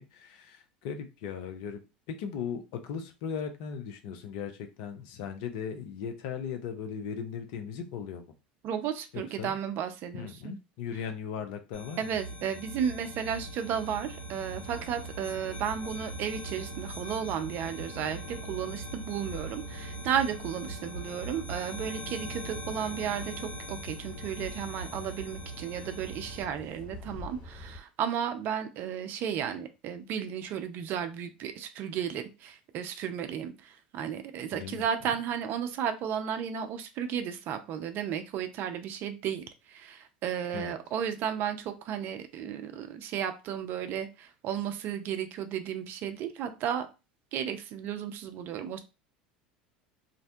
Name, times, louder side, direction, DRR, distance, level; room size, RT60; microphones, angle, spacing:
voice 1, 0.0-1.8 2.1-8.3 9.1-9.6 10.1-12.1 34.5-34.8 40.5-40.7, left 7 dB, 60° left, 6 dB, 0.5 m, -38 dB
voice 2, 8.6-10.5 12.0-46.9 47.3-48.8, right 8 dB, 45° right, 8 dB, 0.4 m, -34 dB
sound 1, 11.7-26.4, right 1 dB, 80° left, 0.9 m, -41 dB
sound 2, 13.8-27.8, left 2 dB, 35° left, 1.2 m, -50 dB
2.5 x 2.1 x 2.6 m, 0.28 s
figure-of-eight pair, 75°, 5 cm